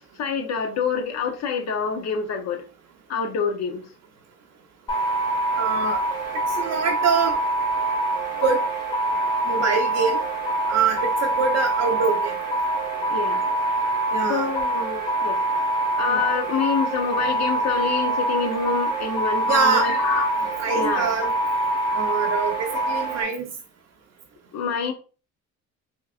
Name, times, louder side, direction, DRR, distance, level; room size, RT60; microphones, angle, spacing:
voice 1, 0.2-2.6 3.1-3.8 13.1-13.5 14.3-15.4 16.0-20.3 20.7-21.1 24.5-24.9, left 6 dB, 60° left, 0.8 m, -26 dB
sound 1, 4.9-23.2, right 2 dB, 15° left, 1.6 m, -25 dB
voice 2, 5.6-6.0 6.6-7.4 8.4-8.6 9.5-10.2 10.7-12.4 14.1-14.5 16.1-16.2 19.4-19.9 20.6-21.3 21.9-23.5, right 6 dB, 60° right, 0.6 m, -24 dB
3.6 x 2.9 x 2.4 m
cardioid pair, 90°, 30 cm